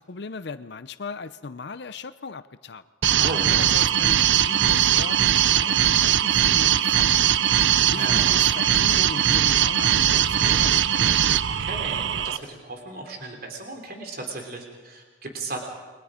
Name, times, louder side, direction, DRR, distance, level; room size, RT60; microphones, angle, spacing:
voice 1, 0.0-2.8 3.4-11.0, left 4 dB, 60° left, 13 dB, 0.6 m, -37 dB
sound 1, 3.0-12.4, right 10 dB, 70° right, 0.6 m, -20 dB
voice 2, 7.9-8.4 11.5-15.6, right 2 dB, 55° right, 2 dB, 3.4 m, -35 dB
29.5 x 22.5 x 5.1 m, 1.3 s
head